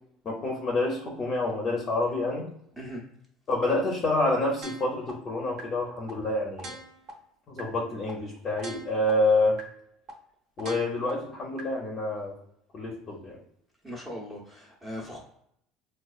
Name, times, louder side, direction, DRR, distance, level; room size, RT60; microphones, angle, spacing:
voice 1, 0.2-2.5 3.5-6.8 7.5-9.6 10.6-12.3 12.7-13.4, left 2 dB, 30° left, -1 dB, 0.6 m, -27 dB
sound 1, 4.6-5.1 5.6-5.7 6.1-6.2 6.6-7.1 7.6-7.7 8.1-8.2 8.6-9.1 9.6-9.7 10.1-10.2 10.6-11.1 11.6-11.7, right 2 dB, 45° right, 0.8 m, -41 dB
voice 2, 13.8-15.2, equal, 10° right, -4 dB, 0.7 m, -39 dB
4.5 x 2.3 x 2.4 m, 0.71 s
cardioid pair, 155°, 0 cm